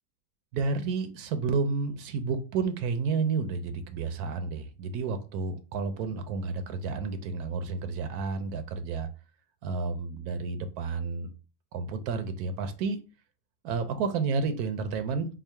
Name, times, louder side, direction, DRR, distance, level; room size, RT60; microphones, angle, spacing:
voice 1, 0.5-9.1 9.6-11.3 11.7-13.0 13.6-15.3, right 4 dB, 80° right, 9 dB, 1.1 m, -31 dB
3.6 x 2.0 x 4.3 m, 0.33 s
omnidirectional pair, 1.6 m